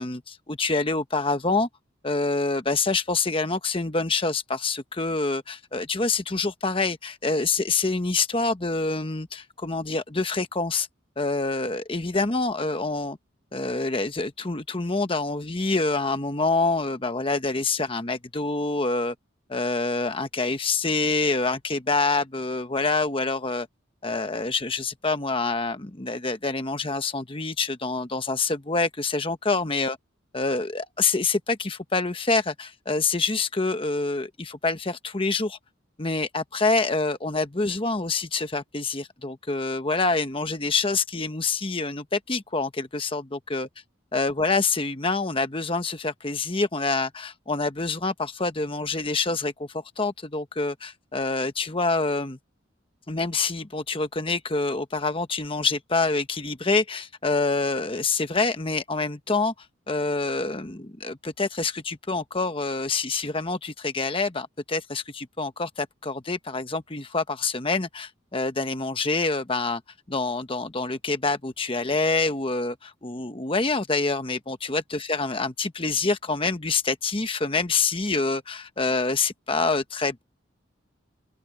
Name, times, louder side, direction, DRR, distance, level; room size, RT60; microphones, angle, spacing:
voice 1, 0.0-1.7 2.0-10.9 11.2-13.2 13.5-19.1 19.5-23.7 24.0-30.0 30.3-35.6 36.0-43.7 44.1-52.4 53.1-69.8 70.1-80.2, left 3 dB, 25° left, 1.1 m, -26 dB
open air
head